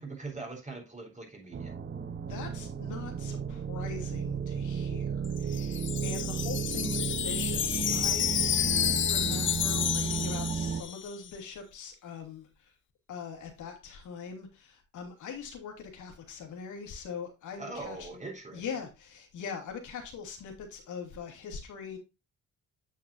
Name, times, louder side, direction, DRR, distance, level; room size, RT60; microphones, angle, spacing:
voice 1, 0.0-1.7 17.6-18.6, right 3 dB, 25° right, 4.0 m, -41 dB
sound 1, 1.5-10.8, right 6 dB, 40° right, 1.1 m, -33 dB
voice 2, 2.2-12.7 13.1-18.2 18.5-22.0, left 6 dB, 75° left, 2.6 m, -42 dB
Wind chime, 5.2-11.2, left 10 dB, 40° left, 0.5 m, -30 dB
8.8 x 6.7 x 2.7 m
cardioid pair, 90°, 30 cm